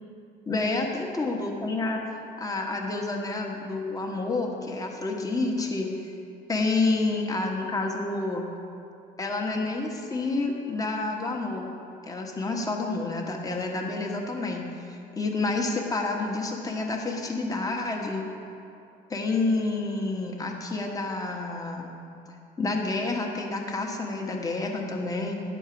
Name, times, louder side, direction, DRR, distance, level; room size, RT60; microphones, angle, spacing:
voice 1, 0.5-2.0 2.4-6.1 6.5-8.5 9.2-11.7 12.1-18.3 19.1-21.9 22.6-25.4, left 3 dB, 20° left, 1 dB, 1.2 m, -29 dB
10.5 x 4.5 x 7.6 m, 2.6 s
cardioid pair, 110°, 17 cm